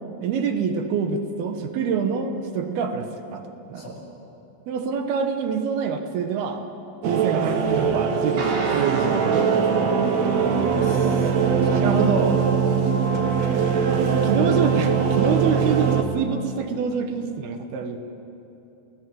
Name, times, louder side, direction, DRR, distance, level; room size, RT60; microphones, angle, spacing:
voice 1, 0.2-3.9 4.7-6.6 7.0-10.2 11.6-12.4 14.1-18.0, right 6 dB, 80° right, 6 dB, 3.1 m, -26 dB
sound 1, 7.0-16.0, right 6 dB, 60° right, 2.0 m, -22 dB
sound 2, 8.4-16.6, right 5 dB, 40° right, 3.6 m, -30 dB
voice 2, 10.6-11.9 14.3-14.5, left 2 dB, 40° left, -3 dB, 6.4 m, -37 dB
29.5 x 17.5 x 7.8 m, 2.9 s
omnidirectional pair, 4.5 m